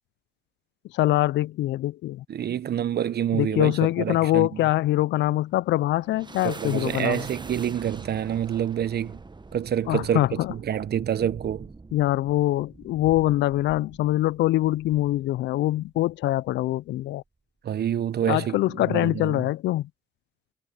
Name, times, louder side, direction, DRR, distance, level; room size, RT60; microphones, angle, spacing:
voice 1, 0.9-2.2 3.3-7.2 9.9-10.5 11.9-17.2 18.3-19.9, left 15 dB, 75° left, 0.6 m, -24 dB
voice 2, 2.3-4.6 6.4-9.2 9.5-11.7 17.6-19.5, right 9 dB, 60° right, 1.2 m, -27 dB
sound 1, 5.4-16.1, right 3 dB, 25° right, 1.4 m, -44 dB
hypercardioid pair, 50°, 19 cm